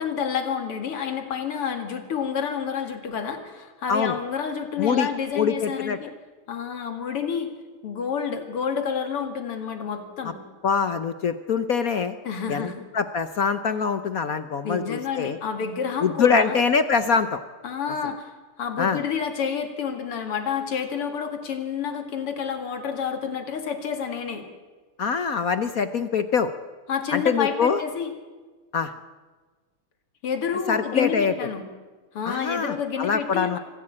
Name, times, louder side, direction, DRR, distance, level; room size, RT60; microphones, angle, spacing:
voice 1, 0.0-6.1 6.5-7.5 7.8-10.4 12.2-12.9 14.6-16.6 17.6-18.3 18.6-24.5 26.9-28.1 30.2-31.7 32.1-33.6, left 7 dB, 90° left, 6 dB, 3.2 m, -29 dB
voice 2, 4.8-5.1 5.4-6.0 10.6-12.2 12.5-15.4 16.0-17.4 18.8-19.0 25.0-26.5 27.1-27.8 28.7-28.9 30.7-31.3 32.2-33.6, left 6 dB, 60° left, 11 dB, 1.0 m, -24 dB
25.0 x 15.0 x 8.7 m, 1.3 s
omnidirectional pair, 2.4 m